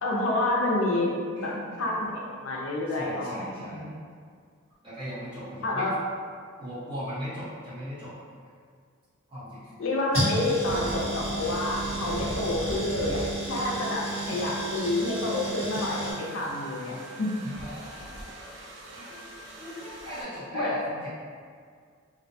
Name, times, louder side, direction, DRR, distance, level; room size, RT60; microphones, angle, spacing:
voice 1, 0.0-1.1 1.4-1.5 1.8-3.9 5.6-5.9 9.8-17.3 20.5-20.7, left 2 dB, 70° left, -3 dB, 0.4 m, -28 dB
voice 2, 1.4-2.0 2.9-3.9 4.8-6.0 6.6-8.2 9.3-9.7 17.4-18.4 18.9-19.2 19.6-21.1, equal, 25° right, -12 dB, 0.8 m, -38 dB
sound 1, 10.1-16.1, right 1 dB, 75° right, 1.3 m, -32 dB
sound 2, 10.7-20.2, right 1 dB, 60° right, 0.4 m, -41 dB
2.5 x 2.1 x 2.6 m, 2.1 s
head